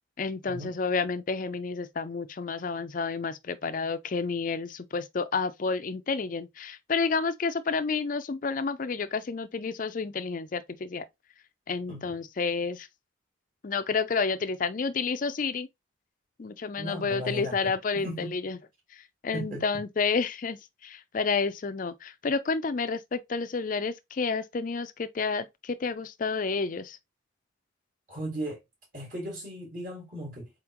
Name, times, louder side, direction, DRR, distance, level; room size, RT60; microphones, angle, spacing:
voice 1, 0.2-11.1 11.7-12.9 13.6-15.7 16.4-18.6 18.9-27.0, left 4 dB, 40° left, 0.4 m, -30 dB
voice 2, 16.8-18.3 19.3-19.6 28.1-28.6 28.9-30.5, right 1 dB, 40° right, 1.8 m, -37 dB
4.3 x 3.6 x 2.9 m
head